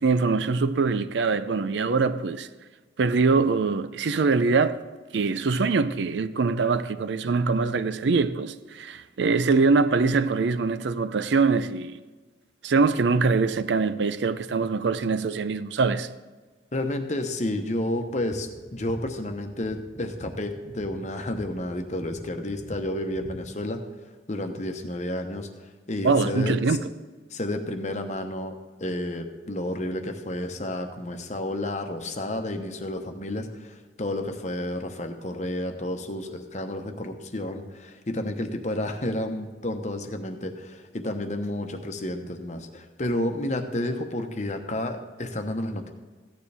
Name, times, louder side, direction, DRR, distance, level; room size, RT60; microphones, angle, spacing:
voice 1, 0.0-2.5 3.0-4.8 5.1-11.9 12.6-16.1 26.0-26.8, right 4 dB, 70° right, 0.5 m, -23 dB
voice 2, 16.7-23.8 24.3-25.5 25.9-26.8 27.3-45.9, left 1 dB, 40° left, 0.9 m, -31 dB
sound 1, 18.1-23.6, right 1 dB, 15° right, 0.8 m, -45 dB
15.0 x 9.5 x 3.4 m
head